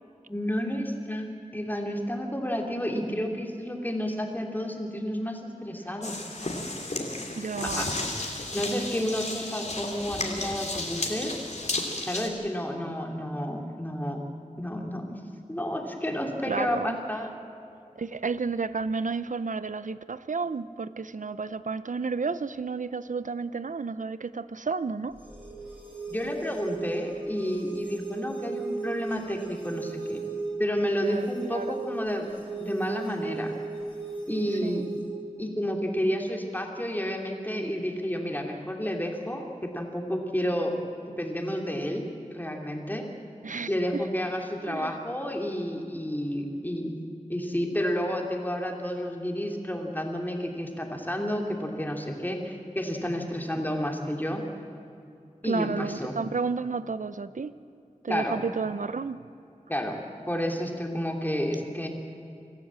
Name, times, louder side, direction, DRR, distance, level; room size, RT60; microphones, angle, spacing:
voice 1, 0.3-6.2 7.6-7.9 8.5-11.4 12.1-14.2 14.6-15.2 15.5-17.3 26.1-30.2 30.6-32.3 32.6-33.5 34.3-34.9 35.4-40.7 41.2-42.0 42.3-43.0 43.7-47.0 47.3-54.4 55.4-56.2 58.1-58.4 59.7-61.9, equal, 15° left, 1 dB, 2.9 m, -31 dB
sound 1, 6.0-12.3, left 2 dB, 60° left, 2.8 m, -33 dB
voice 2, 7.3-7.9 16.5-17.0 18.0-25.2 31.1-31.8 34.6-34.9 43.4-44.0 44.7-45.0 53.5-53.6 55.4-57.5 58.0-59.2, right 4 dB, 75° right, 14 dB, 0.7 m, -32 dB
sound 2, 25.1-35.1, right 3 dB, 10° right, 5.9 m, -36 dB
25.5 x 14.5 x 7.6 m, 2.6 s
wide cardioid pair, 60°, 13 cm